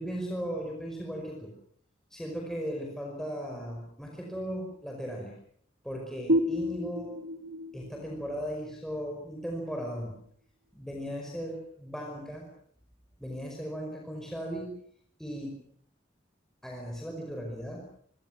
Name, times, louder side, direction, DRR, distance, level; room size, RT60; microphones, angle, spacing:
voice 1, 0.0-1.5 2.1-5.3 5.8-7.2 7.7-10.2 10.7-12.5 13.2-14.7 15.2-15.6 16.6-17.8, equal, 5° left, 0 dB, 5.2 m, -37 dB
sound 1, 6.3-9.7, equal, 75° right, 1.4 m, -31 dB
27.5 x 25.5 x 6.3 m, 0.62 s
head